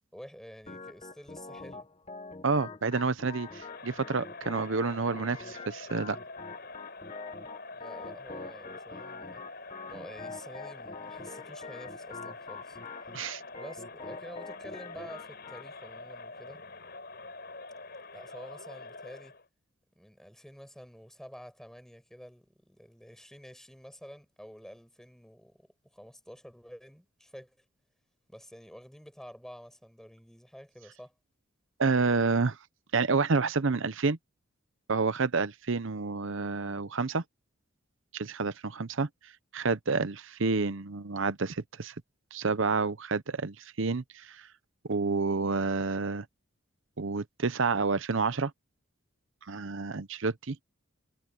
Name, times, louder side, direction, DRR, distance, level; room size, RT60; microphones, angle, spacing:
voice 1, 0.1-1.9 7.7-9.4 9.9-12.8 13.5-16.6 18.1-19.4 19.9-27.5 28.3-31.1, equal, ahead, 6.4 m, -49 dB
Organ, 0.7-15.7, left 4 dB, 30° left, 1.0 m, -45 dB
voice 2, 2.4-6.2 13.1-13.4 31.8-32.6 32.9-34.2 34.9-37.2 38.1-39.1 39.5-41.9 42.3-44.5 44.9-46.3 47.0-48.5 49.5-50.6, right 4 dB, 65° right, 0.8 m, -29 dB
Crowd, 3.3-19.4, left 3 dB, 50° left, 5.1 m, -46 dB
head